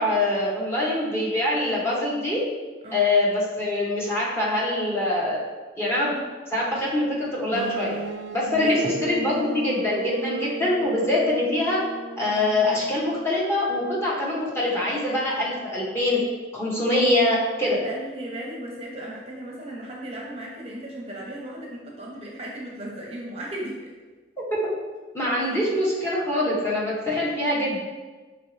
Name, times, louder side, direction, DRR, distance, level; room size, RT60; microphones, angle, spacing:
voice 1, 0.0-2.4 2.9-5.4 5.8-6.1 6.5-7.9 8.3-11.8 12.2-16.2 16.5-17.8 24.6-24.7 25.1-27.8, left 1 dB, 15° left, -6 dB, 0.9 m, -24 dB
sound 1, 7.5-13.4, right 3 dB, 75° right, 0.3 m, -35 dB
voice 2, 17.8-23.9 25.3-25.5, right 1 dB, 35° right, -2 dB, 0.6 m, -36 dB
5.3 x 2.9 x 3.1 m, 1.3 s
head